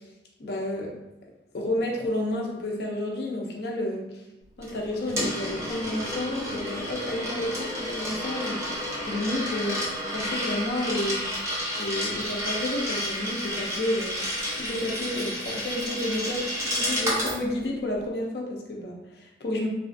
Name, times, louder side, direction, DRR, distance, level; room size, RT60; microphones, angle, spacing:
voice 1, 0.4-1.0 1.5-4.2 4.6-8.8 9.1-9.8 10.1-11.2 11.7-14.3 14.6-19.7, left 1 dB, 60° left, -1 dB, 0.5 m, -30 dB
Coin (dropping), 4.6-17.4, equal, 15° right, 0.6 m, -31 dB
3.1 x 2.4 x 2.5 m, 0.95 s
head